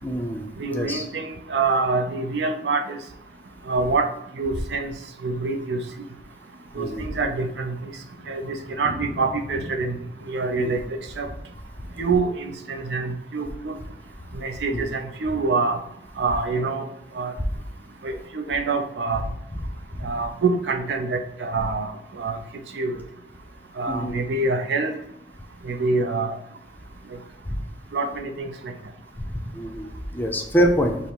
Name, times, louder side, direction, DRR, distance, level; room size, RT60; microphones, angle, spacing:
voice 1, 0.0-0.5 0.7-1.0 6.8-7.1 10.5-10.7 14.7-14.9 20.0-20.1 23.9-24.3 27.5-27.6 29.2-29.3 29.5-31.0, equal, 10° left, 2 dB, 0.5 m, -25 dB
voice 2, 0.6-3.0 3.7-4.1 4.4-4.9 5.2-5.8 6.8-7.9 8.3-10.0 10.3-10.8 11.2-11.3 12.0-13.7 14.3-15.8 16.2-16.8 17.2-17.3 18.0-19.2 20.0-22.4 22.7-22.9 23.8-24.9 25.6-26.3 27.9-28.5, right 3 dB, 70° right, 5 dB, 0.5 m, -25 dB
Thunder, 7.9-13.2 13.5-13.6 13.9-14.0 14.2-14.3 14.9-15.2, left 1 dB, 80° left, 0.7 m, -42 dB
5.5 x 2.0 x 4.5 m, 0.78 s
head